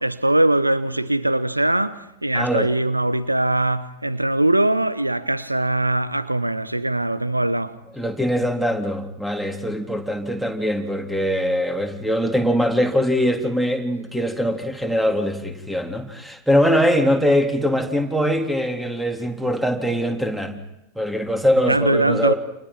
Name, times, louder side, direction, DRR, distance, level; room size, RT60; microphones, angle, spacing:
voice 1, 0.0-7.8 21.7-22.3, right 1 dB, 85° right, 1.0 m, -21 dB
voice 2, 2.3-2.7 7.9-20.6 21.0-22.4, equal, 5° right, 3.6 m, -22 dB
29.5 x 28.5 x 5.9 m
figure-of-eight pair, 90°, 0 cm